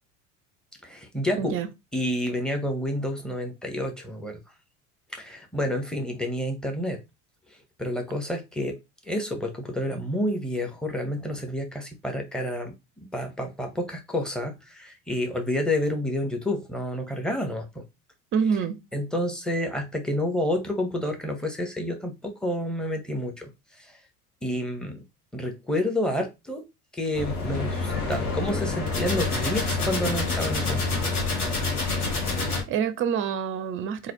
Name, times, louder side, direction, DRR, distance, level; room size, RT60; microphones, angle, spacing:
voice 1, 0.8-1.6 1.9-4.4 5.1-7.0 7.8-8.8 9.0-17.8 18.9-24.0 24.4-25.0 25.3-26.7 26.9-30.8, left 1 dB, ahead, 1.0 m, -29 dB
voice 2, 1.4-1.7 18.3-18.8 32.7-34.1, right 7 dB, 30° right, 0.6 m, -26 dB
sound 1, 27.1-32.6, left 3 dB, 80° left, 1.4 m, -27 dB
3.9 x 2.7 x 2.9 m
figure-of-eight pair, 75°, 44 cm